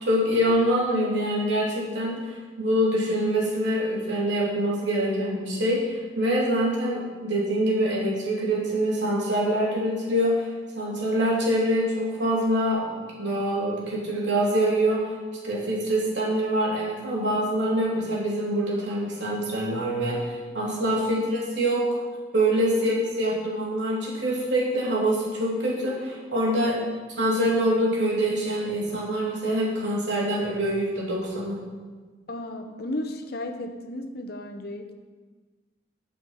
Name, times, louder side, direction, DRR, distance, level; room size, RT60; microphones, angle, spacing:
voice 1, 0.0-10.5 10.7-15.1 15.4-21.8 22.3-26.8 27.2-31.6, right 1 dB, 75° right, -5 dB, 3.2 m, -25 dB
voice 2, 32.3-34.9, left 1 dB, 60° left, 5 dB, 0.9 m, -34 dB
9.2 x 5.9 x 7.5 m, 1.4 s
head